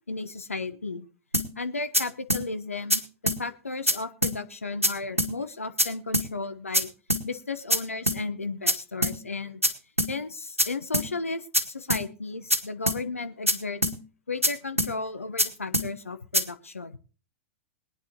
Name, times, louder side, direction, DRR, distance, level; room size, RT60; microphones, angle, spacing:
voice 1, 0.1-1.1 1.6-6.9 7.2-9.6 10.1-13.9 14.3-17.0, left 3 dB, 80° left, 10 dB, 1.0 m, -34 dB
sound 1, 1.3-1.5 1.9-2.0 2.3-2.4 2.9-3.0 3.3-3.4 3.9-4.0 4.2-4.4 4.8-4.9 5.2-5.3 5.8-5.9 6.1-6.3 6.7-6.8 7.1-7.2 7.7-7.8 8.1-8.2 8.7-8.8 9.0-9.2 9.6-9.7 10.0-10.1 10.6-10.7 10.9-11.1 11.5-11.6 11.9-12.0 12.5-12.6 12.9-13.0 13.5-13.6 13.8-14.0 14.4-14.5 14.8-14.9 15.4-15.5 15.7-15.9 16.3-16.4, equal, 90° right, 1.4 m, -23 dB
21.5 x 9.9 x 2.9 m, 0.35 s
figure-of-eight pair, 100°, 7 cm